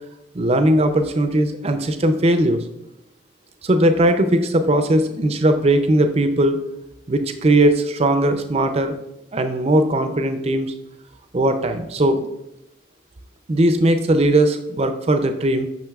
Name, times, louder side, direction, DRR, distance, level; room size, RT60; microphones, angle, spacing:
voice 1, 0.3-2.6 3.6-6.6 7.1-9.0 9.3-10.7 11.3-12.2 13.5-15.7, right 1 dB, 30° right, 8 dB, 0.4 m, -18 dB
8.9 x 6.0 x 2.4 m, 0.88 s
head